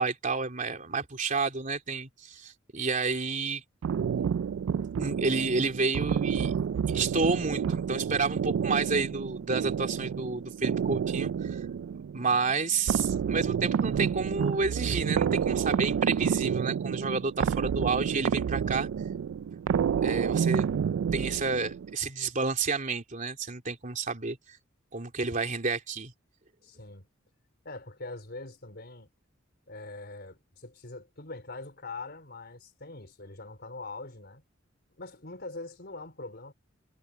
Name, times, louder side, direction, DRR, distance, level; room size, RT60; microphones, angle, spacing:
voice 1, 0.0-3.6 5.0-6.5 6.9-11.6 12.1-18.9 20.0-20.7 21.1-24.6 24.9-26.1, right 4 dB, 40° right, 3.3 m, -30 dB
sound 1, 3.8-21.9, right 7 dB, 75° right, 0.3 m, -29 dB
voice 2, 26.6-27.1 27.6-29.1 29.7-34.4 35.0-36.5, left 3 dB, 55° left, 4.0 m, -43 dB
head